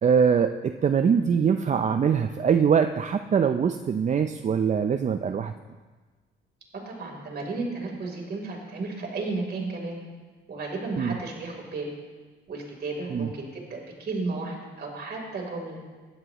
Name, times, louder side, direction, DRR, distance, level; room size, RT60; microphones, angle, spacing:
voice 1, 0.0-5.5 11.0-11.2 13.1-13.3, right 7 dB, 35° right, 8 dB, 0.5 m, -23 dB
voice 2, 6.7-10.0 10.5-11.9 12.5-15.8, right 3 dB, 55° right, 0 dB, 3.6 m, -33 dB
17.0 x 11.0 x 3.0 m, 1.3 s
cardioid pair, 90°, 20 cm